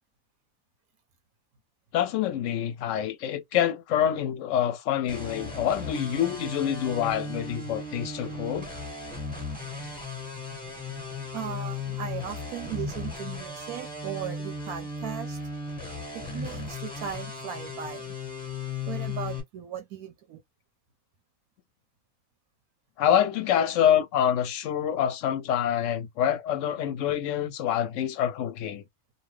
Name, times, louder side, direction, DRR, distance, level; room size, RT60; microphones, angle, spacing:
voice 1, 1.9-8.7 23.0-28.8, left 10 dB, 65° left, 0.8 m, -26 dB
sound 1, 5.1-19.4, left 3 dB, 5° left, 1.2 m, -36 dB
voice 2, 11.3-15.4 16.1-18.1 18.9-20.4, right 9 dB, 85° right, 1.2 m, -37 dB
2.9 x 2.2 x 3.1 m
omnidirectional pair, 1.5 m